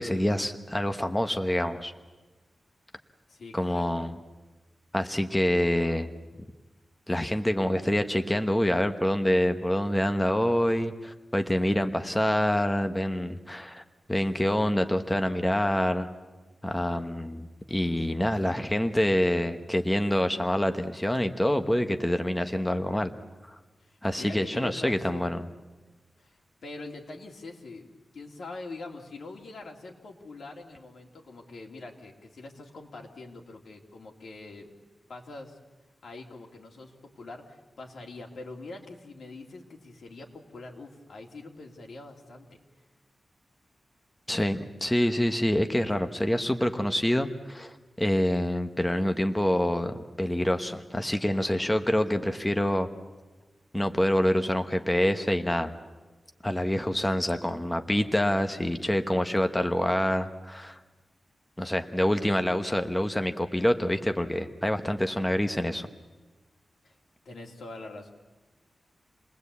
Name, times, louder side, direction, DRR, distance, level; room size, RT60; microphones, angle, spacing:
voice 1, 0.0-1.9 3.5-4.2 4.9-6.1 7.1-13.8 14.1-16.1 16.6-23.1 23.5-23.6 24.0-25.5 44.3-52.9 53.7-55.7 56.4-60.8 61.6-65.9, left 1 dB, 10° left, 7 dB, 1.0 m, -26 dB
voice 2, 3.3-3.8 23.8-25.4 26.2-27.9 28.1-34.7 35.1-35.6 36.0-42.6 66.8-67.0 67.2-68.1, left 2 dB, 80° left, 1 dB, 2.9 m, -44 dB
28.5 x 20.0 x 8.3 m, 1.2 s
wide cardioid pair, 150°, 0 cm